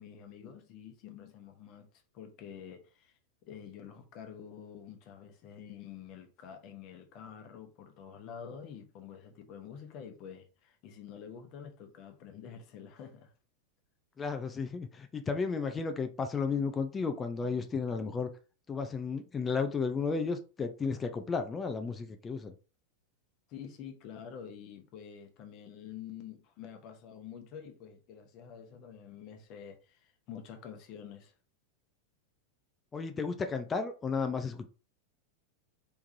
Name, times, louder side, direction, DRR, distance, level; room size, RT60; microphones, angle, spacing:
voice 1, 0.0-1.9 2.1-3.2 3.5-13.3 23.5-31.3, left 8 dB, 40° left, 1.1 m, -48 dB
voice 2, 14.2-18.3 18.7-22.5 32.9-34.7, left 5 dB, 20° left, 0.6 m, -33 dB
4.6 x 3.6 x 2.8 m
figure-of-eight pair, 90°, 0 cm